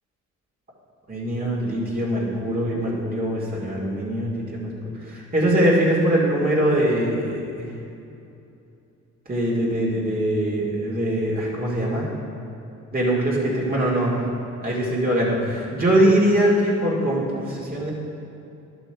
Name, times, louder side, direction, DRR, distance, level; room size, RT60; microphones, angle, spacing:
voice 1, 1.1-4.7 5.1-7.7 9.3-12.0 12.9-14.1 14.6-17.9, right 1 dB, 30° right, -6 dB, 2.2 m, -22 dB
10.5 x 7.0 x 4.6 m, 2.7 s
cardioid pair, 90°, 30 cm